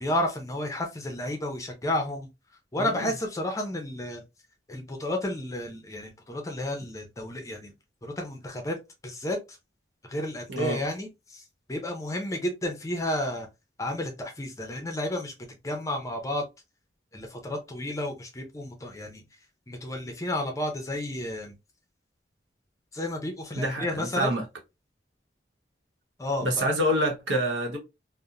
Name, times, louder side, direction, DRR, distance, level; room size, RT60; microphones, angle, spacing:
voice 1, 0.0-2.3 2.7-4.2 4.7-7.7 8.0-8.8 9.0-9.6 10.0-11.4 11.7-13.5 13.8-16.5 17.1-19.2 19.7-21.5 22.9-24.4 26.2-26.7, left 1 dB, 20° left, 0.5 m, -32 dB
voice 2, 2.8-3.1 10.5-10.8 23.6-24.4 26.4-27.8, equal, 85° right, 0.9 m, -27 dB
2.8 x 2.0 x 2.4 m
head